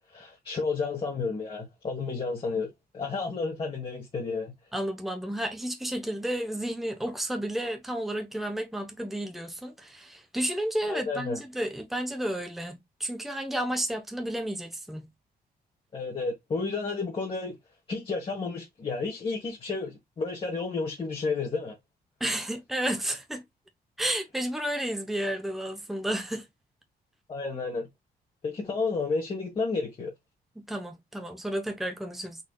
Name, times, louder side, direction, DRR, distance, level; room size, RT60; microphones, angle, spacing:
voice 1, 0.1-2.7 2.9-4.5 10.9-11.4 15.9-17.6 17.9-21.7 27.3-27.9 28.4-30.1, left 4 dB, 35° left, 1.5 m, -31 dB
voice 2, 4.7-15.1 22.2-23.4 24.0-26.5 30.6-32.4, right 1 dB, ahead, 0.9 m, -32 dB
4.7 x 4.3 x 2.3 m
cardioid pair, 130°, 16 cm